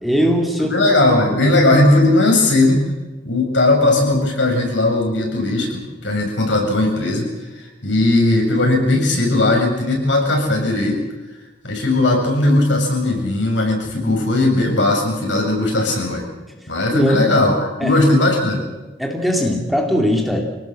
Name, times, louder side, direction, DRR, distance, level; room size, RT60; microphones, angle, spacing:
voice 1, 0.0-0.7 14.0-14.2 16.9-17.2 17.8-18.0 19.0-20.4, equal, ahead, 1 dB, 2.8 m, -19 dB
voice 2, 0.7-2.8 3.2-7.3 7.6-11.0 11.6-16.2 16.7-18.6, left 2 dB, 80° left, 1 dB, 7.3 m, -17 dB
26.0 x 18.0 x 7.6 m, 1.1 s
head